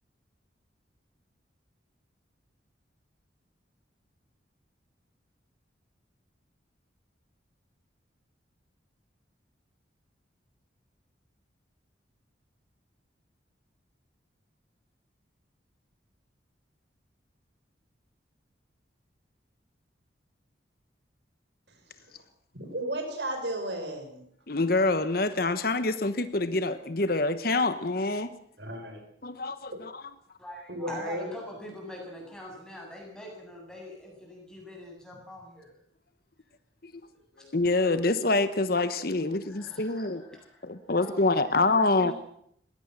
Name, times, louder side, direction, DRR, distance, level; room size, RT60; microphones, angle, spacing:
voice 1, 22.5-24.2 26.4-26.5 28.6-29.0 30.7-31.3 42.0-42.1, right 1 dB, 65° right, 5 dB, 5.6 m, -34 dB
voice 2, 24.5-28.3 29.2-30.0 37.5-40.2 40.6-42.1, left 2 dB, 50° left, 12 dB, 1.1 m, -26 dB
voice 3, 30.4-35.7 36.9-37.1 37.3-37.5 39.4-41.5 42.1-42.2, left 1 dB, 5° left, -1 dB, 7.9 m, -44 dB
21.0 x 17.0 x 7.4 m, 0.70 s
head